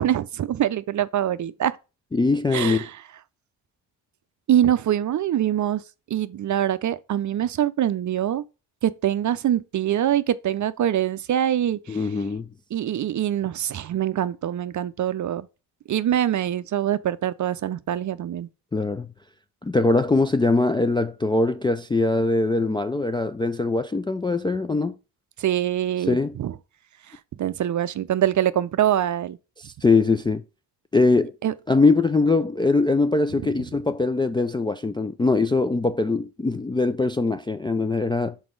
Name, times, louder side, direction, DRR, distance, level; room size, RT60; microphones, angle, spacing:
voice 1, 0.0-1.7 2.5-2.9 4.5-5.8 6.1-8.4 8.8-12.0 12.7-15.5 15.9-18.5 25.4-26.5 27.4-29.4 31.4-31.5 33.4-33.5, right 11 dB, 40° right, 0.5 m, -24 dB
voice 2, 2.1-2.9 11.9-12.5 18.7-19.1 19.6-25.0 26.1-26.3 29.6-30.4 30.9-31.3 31.7-38.3, left 3 dB, 10° left, 0.3 m, -22 dB
6.0 x 4.2 x 3.8 m
supercardioid pair, 55°, 46 cm